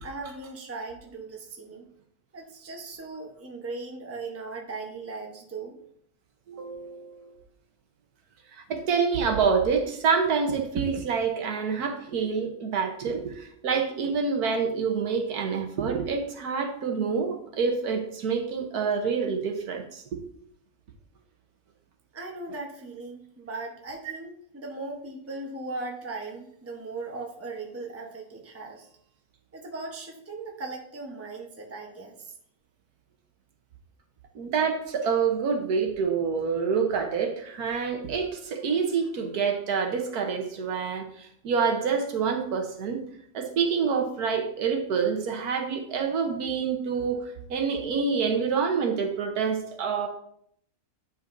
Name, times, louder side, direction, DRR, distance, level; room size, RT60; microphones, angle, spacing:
voice 1, 0.0-1.9 2.3-5.8 22.1-28.9 29.5-32.3, right 3 dB, 10° right, 1 dB, 0.7 m, -38 dB
voice 2, 6.5-7.3 8.7-20.2 34.3-43.0 43.3-50.1, right 5 dB, 80° right, 4 dB, 1.5 m, -27 dB
9.1 x 5.5 x 2.6 m, 0.68 s
omnidirectional pair, 1.6 m